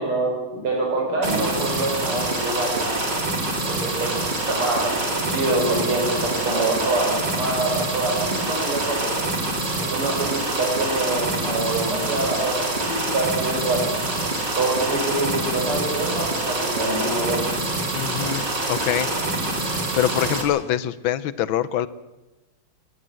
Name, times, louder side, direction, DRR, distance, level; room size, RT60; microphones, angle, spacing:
voice 1, 0.0-3.0 3.7-4.1 4.4-9.2 9.8-13.8 14.6-17.4, right 2 dB, 85° right, 0 dB, 6.1 m, -25 dB
sound 1, 1.2-20.4, right 2 dB, 55° right, 4.3 m, -26 dB
voice 2, 17.9-19.1 19.6-21.9, left 11 dB, 70° left, 17 dB, 1.6 m, -25 dB
21.0 x 19.0 x 7.7 m, 1.1 s
omnidirectional pair, 2.4 m